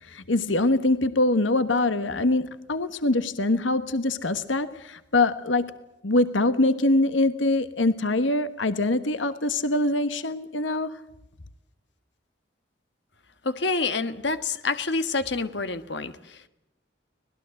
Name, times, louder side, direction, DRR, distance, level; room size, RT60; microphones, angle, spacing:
voice 1, 0.0-5.7 6.0-11.0, left 2 dB, 85° left, 1.4 m, -24 dB
voice 2, 13.4-16.5, left 3 dB, 65° left, 1.5 m, -28 dB
25.5 x 19.5 x 7.7 m
head